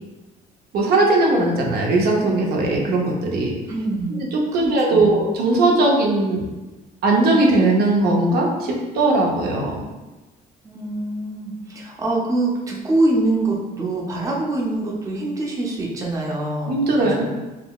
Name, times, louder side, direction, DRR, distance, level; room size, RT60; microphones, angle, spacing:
voice 1, 0.7-3.5 4.1-6.5 7.0-9.9 16.7-17.2, right 2 dB, 65° right, -1 dB, 0.6 m, -19 dB
voice 2, 3.7-4.2 4.5-5.2 10.6-17.2, right 2 dB, 20° right, -3 dB, 0.5 m, -24 dB
3.7 x 2.2 x 2.2 m, 1.1 s
cardioid pair, 110°, 17 cm